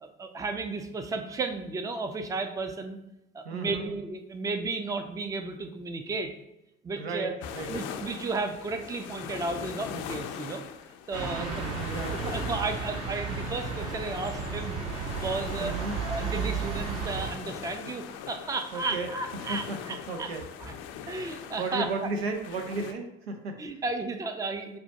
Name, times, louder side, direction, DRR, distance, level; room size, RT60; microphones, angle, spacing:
voice 1, 0.0-3.0 3.3-6.3 6.8-7.3 7.7-10.6 11.1-11.6 12.2-14.8 15.2-15.8 16.0-20.3 20.6-20.7 21.1-21.9 23.6-24.8, right 3 dB, 10° right, 7 dB, 0.4 m, -33 dB
voice 2, 3.4-3.9 7.0-7.8 11.3-12.4 15.6-16.0 18.7-19.1 19.5-20.4 21.6-23.6, right 3 dB, 85° right, 4 dB, 0.5 m, -34 dB
sound 1, 7.4-22.9, left 8 dB, 55° left, 0.4 m, -42 dB
sound 2, 11.1-17.3, right 4 dB, 65° right, 1.4 m, -33 dB
5.5 x 2.2 x 2.8 m, 0.90 s
hypercardioid pair, 60°, 30 cm